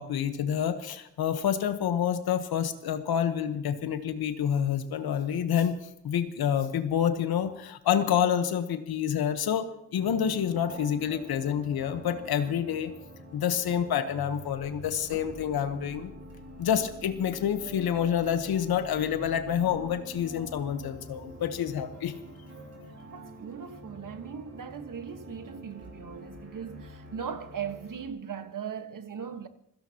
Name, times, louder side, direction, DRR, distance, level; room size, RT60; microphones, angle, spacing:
voice 1, 0.0-5.8 6.0-12.9 13.3-16.1 16.6-22.1, left 9 dB, 90° left, 1.2 m, -28 dB
sound 1, 9.9-28.1, right 1 dB, 45° right, 5.2 m, -46 dB
voice 2, 23.1-29.5, right 7 dB, 60° right, 1.5 m, -39 dB
26.5 x 16.5 x 2.9 m
supercardioid pair, 45°, 36 cm